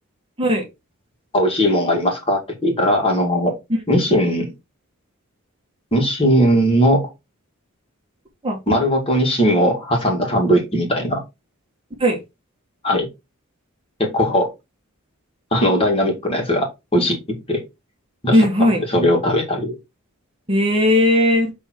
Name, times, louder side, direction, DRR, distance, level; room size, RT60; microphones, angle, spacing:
voice 1, 1.3-3.5 3.9-4.5 5.9-7.0 8.7-11.2 12.8-13.1 14.0-14.5 15.5-17.6 18.2-19.7, equal, 25° left, 2.1 m, -19 dB
voice 2, 18.3-18.8 20.5-21.5, left 1 dB, 25° right, 1.4 m, -17 dB
6.9 x 3.5 x 4.5 m
head